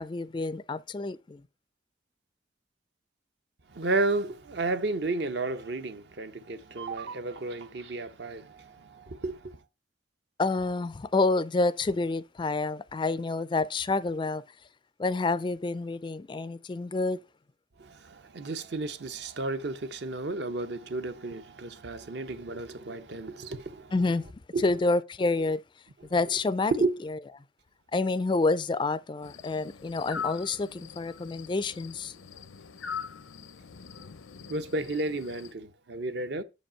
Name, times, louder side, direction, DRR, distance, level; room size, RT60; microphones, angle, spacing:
voice 1, 0.0-1.4 10.4-14.4 15.0-17.2 23.9-24.3 24.6-25.6 26.1-26.7 27.1-27.2 27.9-32.1, left 3 dB, 25° left, 0.3 m, -28 dB
voice 2, 3.7-9.6 17.8-23.9 24.5-24.6 26.0-26.1 26.7-26.9 34.5-36.4, right 2 dB, 60° right, 0.7 m, -32 dB
sound 1, 29.2-35.5, left 6 dB, 85° left, 0.6 m, -42 dB
6.9 x 5.2 x 5.5 m
head